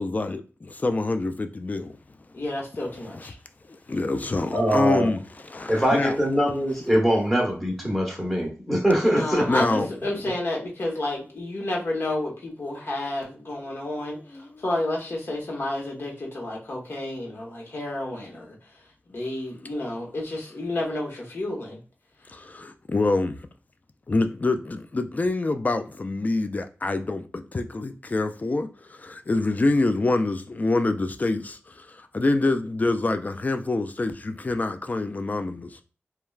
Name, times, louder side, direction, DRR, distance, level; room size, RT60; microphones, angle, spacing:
voice 1, 0.0-2.0 3.2-3.3 3.7-6.2 9.5-9.9 14.1-14.6 22.3-23.5 24.1-35.8, left 2 dB, 35° left, 0.3 m, -26 dB
voice 2, 2.3-3.3 9.0-18.5 19.1-21.8, left 1 dB, 60° left, 1.0 m, -30 dB
voice 3, 4.5-5.1 5.7-9.5, equal, ahead, 1.0 m, -23 dB
3.1 x 2.2 x 2.3 m
wide cardioid pair, 80°, 5 cm